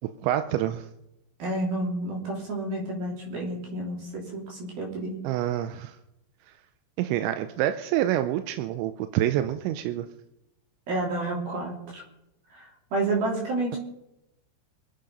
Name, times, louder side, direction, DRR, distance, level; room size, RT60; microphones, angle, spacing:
voice 1, 0.2-0.9 5.2-6.0 7.0-10.1, right 12 dB, 80° right, 9 dB, 2.7 m, -27 dB
voice 2, 1.4-5.2 10.9-12.0 12.5-13.8, right 2 dB, 50° right, -1 dB, 4.8 m, -30 dB
25.5 x 8.8 x 5.3 m, 0.89 s
omnidirectional pair, 5.7 m